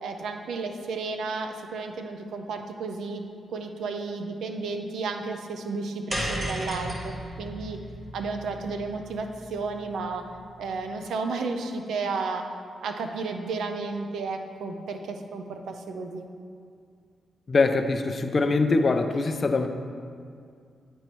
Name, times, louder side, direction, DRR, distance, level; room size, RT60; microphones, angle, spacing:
voice 1, 0.0-3.2 3.5-7.8 8.1-10.2 10.6-12.5 12.8-16.3, right 4 dB, 85° right, 5 dB, 0.6 m, -32 dB
sound 1, 6.1-10.5, equal, 20° right, 1.2 m, -35 dB
voice 2, 17.5-19.7, left 3 dB, 45° left, 7 dB, 0.5 m, -23 dB
9.2 x 4.4 x 4.5 m, 2.3 s
cardioid pair, 75°, 0 cm